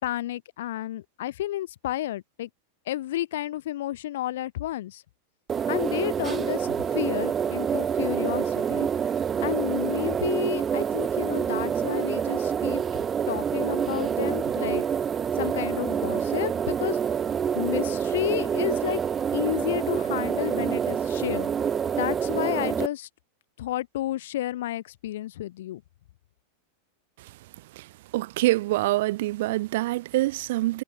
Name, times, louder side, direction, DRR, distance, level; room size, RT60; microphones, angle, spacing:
voice 1, 0.0-2.5 2.9-5.0 5.7-8.9 9.4-12.8 13.3-14.8 15.4-17.0 17.5-19.0 19.3-21.5 22.0-23.1 23.6-25.8, left 14 dB, 55° left, 6.5 m, -31 dB
sound 1, 5.5-22.9, right 7 dB, 20° right, 1.3 m, -27 dB
voice 2, 28.1-30.8, right 18 dB, 50° right, 1.4 m, -25 dB
figure-of-eight pair, 90°, 0 cm